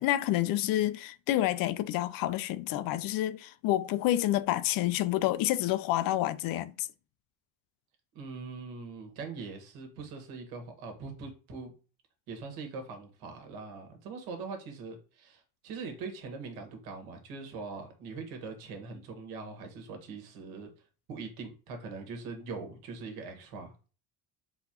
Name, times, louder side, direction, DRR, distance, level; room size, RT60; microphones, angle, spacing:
voice 1, 0.0-6.9, left 14 dB, 65° left, 0.5 m, -28 dB
voice 2, 8.1-11.7 12.3-20.7 21.1-23.7, right 4 dB, 80° right, 1.6 m, -42 dB
4.0 x 3.8 x 2.9 m
supercardioid pair, 100°, 37 cm